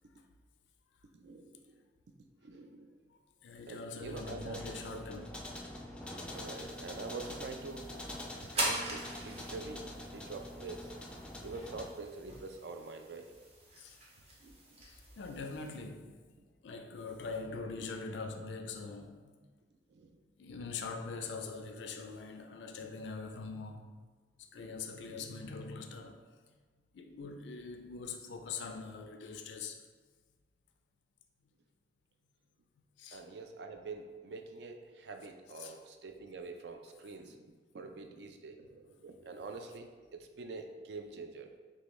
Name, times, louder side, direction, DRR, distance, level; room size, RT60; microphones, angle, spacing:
voice 1, 1.1-1.8 2.4-2.9 3.7-5.1 6.3-7.9 8.5-10.9 11.4-13.3 14.4-14.8 19.9-20.2 24.5-25.2 33.1-41.5, right 3 dB, 70° right, 0.4 m, -46 dB
voice 2, 3.4-5.4 13.8-14.0 14.9-16.2 16.6-19.4 20.4-24.0 24.5-26.2 26.9-29.8 33.0-33.2 35.6-35.8, left 4 dB, 85° left, 0.4 m, -43 dB
sound 1, 4.0-11.9, left 1 dB, 5° left, 0.4 m, -45 dB
sound 2, 6.3-15.8, right 1 dB, 35° right, 0.8 m, -43 dB
6.3 x 2.3 x 3.0 m
head